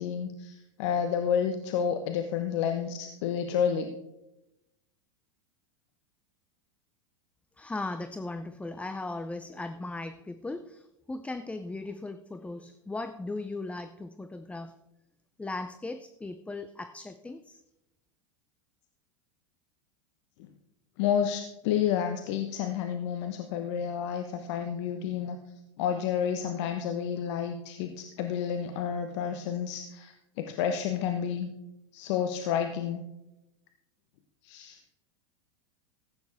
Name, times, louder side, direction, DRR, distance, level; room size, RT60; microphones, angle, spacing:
voice 1, 0.0-3.9 21.0-25.4 25.8-31.5 31.9-33.0 34.4-34.8, left 8 dB, 65° left, 7 dB, 1.1 m, -30 dB
voice 2, 7.6-14.8 15.4-17.6, left 2 dB, 10° left, 10 dB, 0.6 m, -38 dB
15.5 x 9.0 x 3.6 m, 0.90 s
hypercardioid pair, 110°, 16 cm